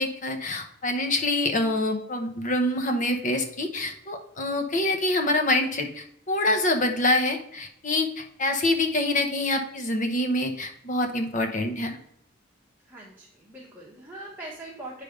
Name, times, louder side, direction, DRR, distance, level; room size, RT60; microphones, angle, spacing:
voice 1, 0.0-12.0, left 1 dB, 40° left, 5 dB, 0.9 m, -26 dB
voice 2, 12.8-15.0, right 2 dB, 10° right, -5 dB, 1.1 m, -42 dB
9.1 x 3.4 x 5.0 m, 0.73 s
head